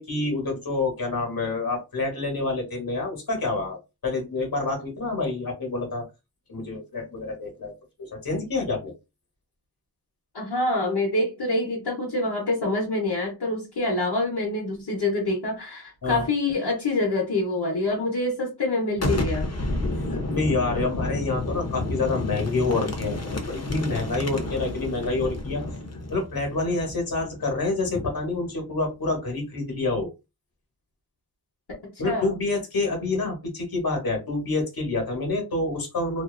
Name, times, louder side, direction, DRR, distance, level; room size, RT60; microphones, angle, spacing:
voice 1, 0.0-6.1 6.5-8.9 16.0-16.3 20.1-25.6 26.1-30.1 32.0-36.2, left 3 dB, 65° left, 1.2 m, -27 dB
voice 2, 10.3-19.5 31.8-32.3, left 2 dB, 80° left, 1.0 m, -26 dB
Boom, 18.9-28.5, left 2 dB, 40° left, 0.6 m, -31 dB
2.6 x 2.3 x 2.3 m
wide cardioid pair, 50°, 39 cm